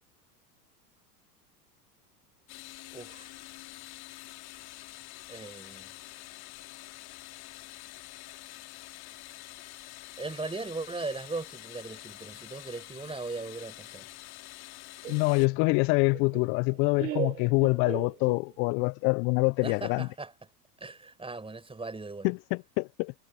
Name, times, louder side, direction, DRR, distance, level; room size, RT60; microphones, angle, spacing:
sound 1, 2.5-15.5, left 21 dB, 45° left, 3.0 m, -47 dB
voice 1, 2.9-3.3 5.3-5.9 10.2-14.1 19.6-20.3 20.8-22.3, right 3 dB, 10° right, 4.9 m, -38 dB
Laughter, 15.0-18.7, right 11 dB, 75° right, 4.5 m, -38 dB
voice 2, 15.1-20.1 22.2-23.1, left 30 dB, 30° left, 0.3 m, -26 dB
figure-of-eight pair, 85°, 49 cm